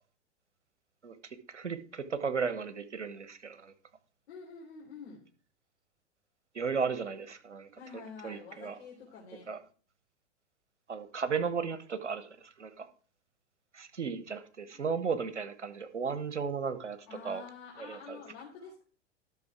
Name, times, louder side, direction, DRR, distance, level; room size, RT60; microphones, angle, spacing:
voice 1, 1.0-3.7 6.5-7.7 8.2-8.8 9.5-9.6 10.9-12.9 13.7-17.0 17.2-17.4 17.8-18.2, right 5 dB, 90° right, 1.2 m, -35 dB
voice 2, 4.3-5.2 7.7-9.5 14.7-14.8 17.1-18.8, left 5 dB, 60° left, 3.2 m, -48 dB
12.5 x 6.3 x 4.7 m
figure-of-eight pair, 95°, 35 cm